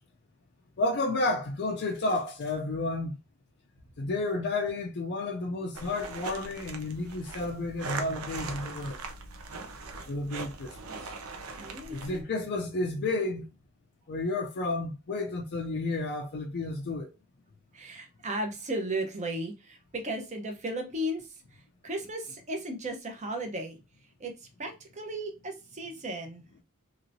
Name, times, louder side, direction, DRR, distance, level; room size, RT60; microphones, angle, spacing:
voice 1, 0.8-3.2 4.0-9.0 10.1-11.0 11.9-13.5 14.1-17.1, left 2 dB, 50° left, 0.4 m, -31 dB
sound 1, 5.7-12.2, right 4 dB, 70° right, 0.6 m, -40 dB
voice 2, 11.6-12.2 17.7-23.8 24.2-26.4, right 1 dB, 35° right, 0.8 m, -35 dB
3.2 x 2.9 x 2.6 m
head